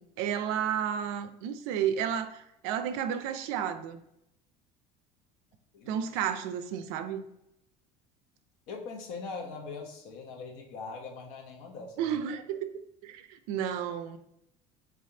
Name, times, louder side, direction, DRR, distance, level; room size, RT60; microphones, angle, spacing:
voice 1, 0.0-4.0 5.9-7.3 12.0-14.2, right 9 dB, 85° right, 0.4 m, -32 dB
voice 2, 5.7-6.3 8.7-12.2, left 4 dB, 80° left, 0.9 m, -42 dB
3.6 x 3.3 x 2.7 m
cardioid pair, 130°, 18 cm